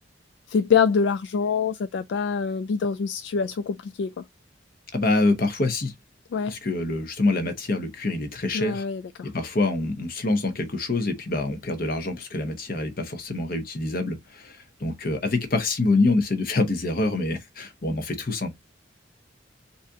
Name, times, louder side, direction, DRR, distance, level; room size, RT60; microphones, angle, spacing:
voice 1, 0.5-4.2 6.3-6.6 8.5-9.0, left 6 dB, 65° left, 0.3 m, -25 dB
voice 2, 4.9-5.9 6.5-8.8 9.2-18.5, left 2 dB, 50° left, 1.0 m, -26 dB
4.1 x 2.7 x 3.6 m
head